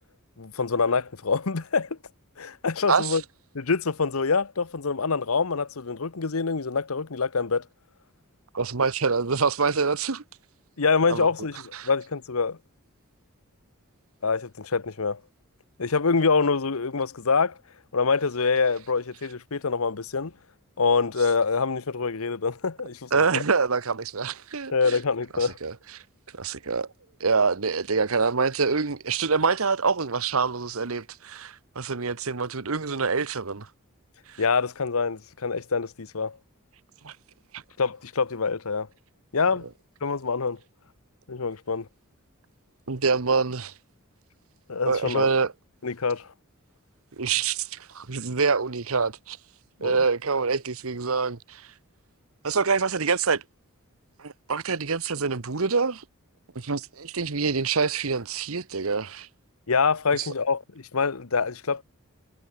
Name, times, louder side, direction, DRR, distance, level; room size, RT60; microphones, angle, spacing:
voice 1, 0.4-2.0 2.4-3.2 3.5-7.7 10.8-12.6 14.2-15.2 15.8-17.6 17.9-20.3 20.8-23.4 24.7-25.6 34.4-36.4 37.8-38.9 39.3-39.7 40.0-40.6 41.3-41.9 44.7-45.3 45.8-46.3 49.8-50.0 59.7-61.8, left 4 dB, 80° left, 1.0 m, -25 dB
voice 2, 2.9-3.2 8.5-10.2 11.1-11.3 11.7-11.9 23.1-25.0 25.4-25.7 26.3-26.9 27.2-33.7 34.3-34.4 37.0-37.2 37.5-37.6 42.9-43.7 44.9-45.5 47.2-49.4 49.8-51.7 52.4-53.4 54.2-56.0 56.5-59.3 60.1-60.3, right 5 dB, 75° right, 1.1 m, -26 dB
head